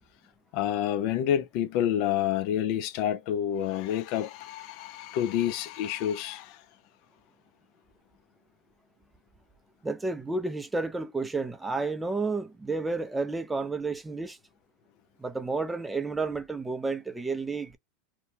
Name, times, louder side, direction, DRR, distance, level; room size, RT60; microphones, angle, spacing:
voice 1, 0.5-6.6, left 10 dB, 55° left, 0.4 m, -28 dB
voice 2, 9.8-14.4 15.2-17.8, right 3 dB, 10° right, 0.5 m, -31 dB
2.8 x 2.1 x 2.6 m
supercardioid pair, 135°, 0 cm